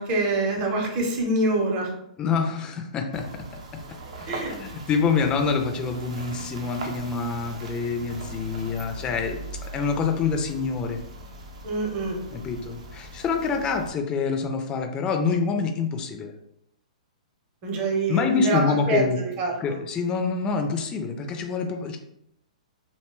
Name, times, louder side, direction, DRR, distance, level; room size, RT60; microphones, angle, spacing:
voice 1, 0.0-1.9 4.3-4.5 11.6-12.2 17.6-19.8, right 2 dB, 35° right, -1 dB, 0.7 m, -25 dB
voice 2, 2.2-3.3 3.7-3.8 4.3-9.4 9.7-11.0 12.3-16.3 18.1-19.2 19.6-22.0, left 5 dB, 20° left, 4 dB, 0.3 m, -26 dB
sound 1, 3.1-13.9, right 1 dB, 70° right, 0.6 m, -40 dB
2.8 x 2.1 x 2.9 m, 0.77 s
hypercardioid pair, 120°, 4 cm